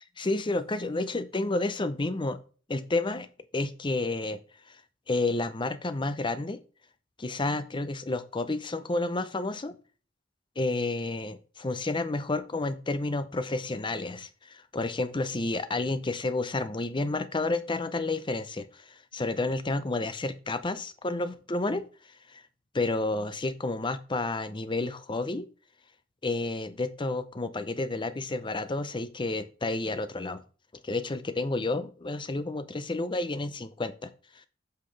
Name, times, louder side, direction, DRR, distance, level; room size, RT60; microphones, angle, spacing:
voice 1, 0.2-2.4 2.7-3.3 3.5-4.4 5.1-6.6 7.2-9.7 10.6-21.8 22.3-22.4 22.7-25.5 26.2-30.4 30.8-34.1, left 2 dB, 25° left, 12 dB, 0.6 m, -30 dB
8.5 x 5.9 x 3.3 m, 0.38 s
head